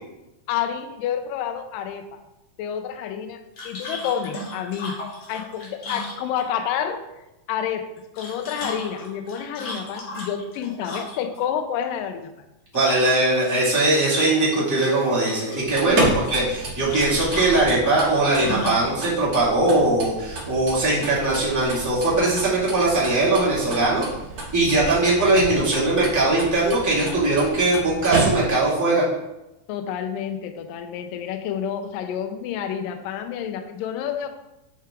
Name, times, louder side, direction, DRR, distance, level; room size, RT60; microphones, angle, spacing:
voice 1, 0.5-2.2 2.6-5.0 5.3-7.0 7.5-7.9 8.1-12.3 15.9-16.0 29.7-34.3, left 8 dB, 80° left, 7 dB, 2.1 m, -29 dB
sound 1, 3.6-6.7 8.0-11.4 12.7-13.5 13.8-14.5 14.8-15.6 16.9-18.9, left 1 dB, 55° left, 1.7 m, -35 dB
voice 2, 12.7-24.1 24.5-29.0, right 2 dB, 10° right, -8 dB, 0.8 m, -20 dB
sound 2, 15.6-28.7, right 2 dB, 75° right, 0.9 m, -31 dB
7.4 x 4.7 x 3.6 m, 0.96 s
omnidirectional pair, 4.3 m